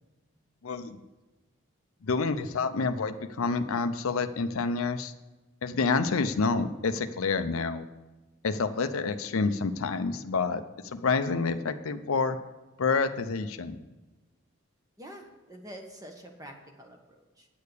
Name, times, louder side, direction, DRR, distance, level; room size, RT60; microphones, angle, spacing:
voice 1, 0.6-1.0 2.0-5.1 5.6-7.9 8.4-10.6 10.9-12.4 12.8-13.8, left 4 dB, 75° left, 9 dB, 0.6 m, -28 dB
voice 2, 15.0-17.5, equal, 15° right, 2 dB, 1.1 m, -46 dB
9.4 x 6.6 x 6.8 m, 1.1 s
head